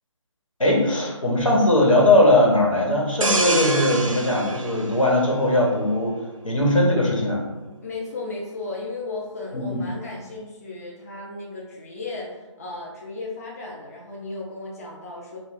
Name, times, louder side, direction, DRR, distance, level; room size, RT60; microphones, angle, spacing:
voice 1, 0.6-6.1 6.4-7.4 9.5-9.8, left 1 dB, 85° left, -3 dB, 1.2 m, -19 dB
sound 1, 3.2-5.9 6.3-6.6, right 2 dB, 90° right, 0.6 m, -26 dB
voice 2, 7.8-15.4, left 3 dB, 30° left, -3 dB, 0.5 m, -35 dB
3.3 x 2.3 x 3.9 m, 1.1 s
figure-of-eight pair, 155°, 16 cm